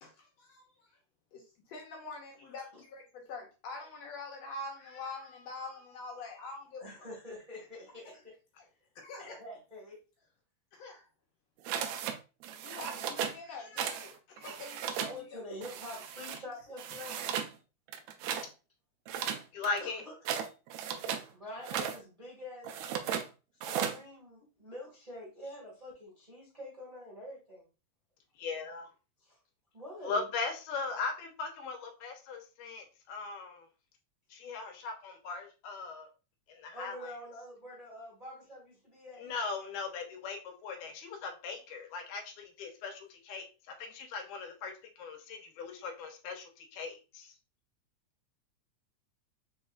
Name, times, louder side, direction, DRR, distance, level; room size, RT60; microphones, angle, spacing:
voice 1, 0.0-1.0 1.3-6.9 8.6-8.7 9.0-9.4 10.7-11.1 12.6-15.4 15.7-15.8, left 3 dB, 70° left, 0 dB, 1.9 m, -45 dB
voice 2, 6.8-8.4 9.2-10.0 14.8-17.2 19.8-20.1 21.2-22.7 23.6-27.6 29.7-30.3 36.7-39.3 40.8-40.9, left 1 dB, 15° right, -4 dB, 1.2 m, -46 dB
sound 1, 11.7-12.2 12.4-13.4 13.8-14.1 14.4-15.2 15.6-16.4 16.8-17.5 17.9-18.5 19.1-21.3 21.6-22.0 22.6-23.3 23.6-24.0, right 8 dB, 80° right, 1.7 m, -36 dB
voice 3, 19.5-20.0 28.4-28.9 30.0-33.7 34.3-36.1 36.5-37.1 39.2-43.5 43.8-44.7 45.0-47.3, left 4 dB, 85° left, 4 dB, 2.3 m, -39 dB
5.5 x 3.4 x 2.3 m, 0.31 s
omnidirectional pair, 3.5 m